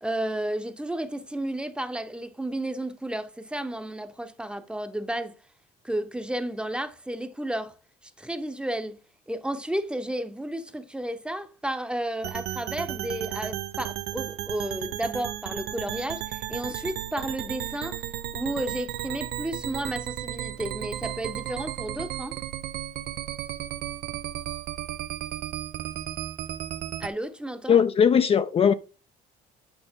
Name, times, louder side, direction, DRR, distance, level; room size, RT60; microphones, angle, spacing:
voice 1, 0.0-5.3 5.8-7.7 8.0-9.0 9.3-18.0 18.3-22.4 27.0-27.8, right 1 dB, 5° right, 0.9 m, -32 dB
sound 1, 12.2-27.1, right 12 dB, 75° right, 0.7 m, -34 dB
voice 2, 27.7-28.7, left 7 dB, 35° left, 0.5 m, -19 dB
8.8 x 5.4 x 3.7 m
cardioid pair, 110°, 17 cm